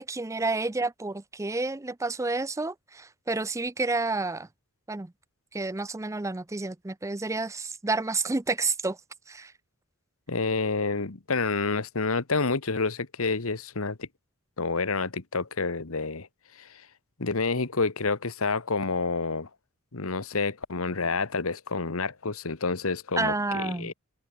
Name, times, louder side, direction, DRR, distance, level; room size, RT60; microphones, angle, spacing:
voice 1, 0.0-4.5 4.9-5.1 5.5-9.0 9.3-9.5 23.2-23.9, right 3 dB, 15° right, 0.5 m, -30 dB
voice 2, 10.3-14.1 14.6-16.3 16.5-16.9 17.2-19.5 19.9-23.9, left 4 dB, 75° left, 1.4 m, -29 dB
open air
head